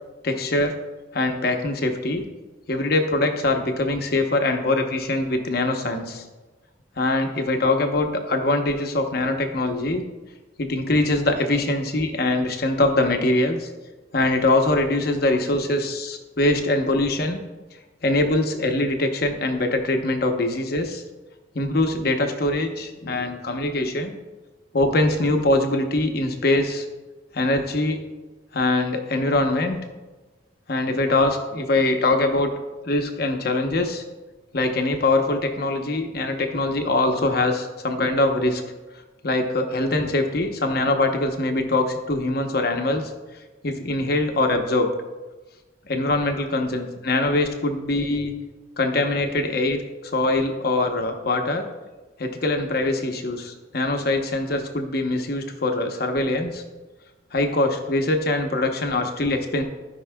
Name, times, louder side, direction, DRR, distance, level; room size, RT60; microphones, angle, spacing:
voice 1, 0.2-0.7 1.1-2.3 2.7-6.2 7.0-10.0 10.6-13.7 14.1-17.4 18.0-21.0 21.5-24.1 24.7-26.8 27.3-28.0 28.5-29.8 30.7-32.5 32.8-34.0 34.5-38.6 39.2-43.1 43.6-44.9 45.9-48.3 48.8-51.6 52.2-56.6 57.3-59.6, left 2 dB, 55° left, 5 dB, 0.9 m, -23 dB
16.0 x 5.4 x 2.3 m, 1.2 s
head